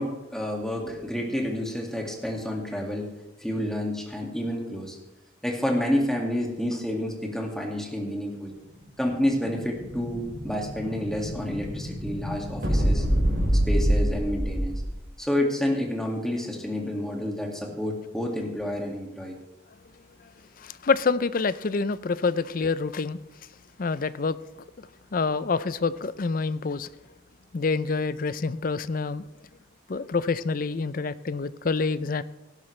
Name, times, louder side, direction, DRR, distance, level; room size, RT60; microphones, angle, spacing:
voice 1, 0.0-3.1 3.4-5.0 5.4-8.5 9.0-13.0 13.7-14.8 15.2-19.4, left 1 dB, 5° left, -1 dB, 2.0 m, -29 dB
Explosion, 8.9-15.0, equal, 65° right, 4.9 m, -26 dB
voice 2, 20.6-23.2 23.8-24.4 24.8-24.9 25.1-26.9 27.5-29.3 29.9-32.2, left 4 dB, 45° left, 15 dB, 0.5 m, -27 dB
17.5 x 12.0 x 3.3 m, 0.98 s
head